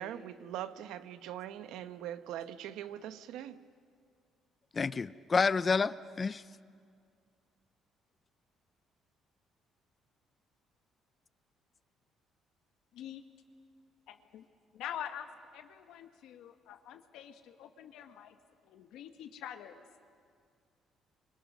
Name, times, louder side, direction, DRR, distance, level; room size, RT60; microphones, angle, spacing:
voice 1, 0.0-3.6, right 11 dB, 85° right, 1.0 m, -42 dB
voice 2, 4.7-6.4, left 4 dB, 25° left, 0.6 m, -29 dB
voice 3, 14.1-14.4 14.7-18.4 18.6-19.8, left 10 dB, 80° left, 1.5 m, -45 dB
30.0 x 25.0 x 6.2 m
cardioid pair, 140°, 0 cm